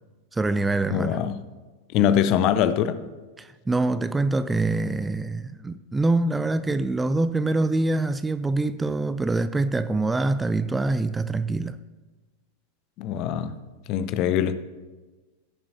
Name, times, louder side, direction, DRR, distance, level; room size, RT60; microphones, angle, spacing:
voice 1, 0.3-1.2 3.4-11.8, right 2 dB, 10° right, 0.3 m, -25 dB
voice 2, 0.9-1.4 1.9-3.0 13.0-13.5 13.9-14.5, left 9 dB, 40° left, 0.6 m, -23 dB
17.5 x 6.9 x 2.8 m
figure-of-eight pair, 90°, 0 cm